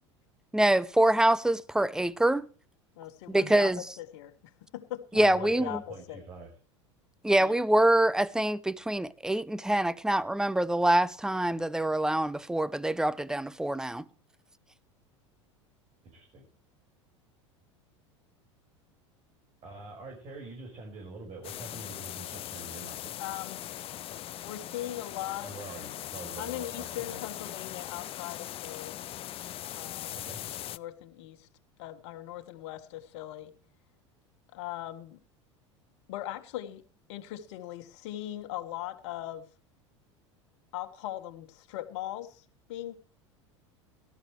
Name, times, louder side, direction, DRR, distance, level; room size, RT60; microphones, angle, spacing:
voice 1, 0.5-2.5 3.3-3.8 5.2-5.8 7.2-14.0, right 1 dB, 5° right, 0.7 m, -25 dB
voice 2, 3.0-3.7 4.0-6.2 7.4-7.8 23.2-23.6 24.4-25.5 26.4-29.0 29.7-30.2 30.7-31.5 31.8-33.5 34.5-35.2 36.1-36.8 37.1-39.5 40.7-42.9, left 13 dB, 65° left, 1.5 m, -40 dB
voice 3, 5.2-6.5 16.1-16.4 19.6-23.1 25.4-27.2 30.2-30.4, right 3 dB, 40° right, 5.4 m, -45 dB
sound 1, 21.4-30.8, left 13 dB, 35° left, 0.6 m, -40 dB
18.0 x 12.5 x 3.2 m
hypercardioid pair, 80°, 16 cm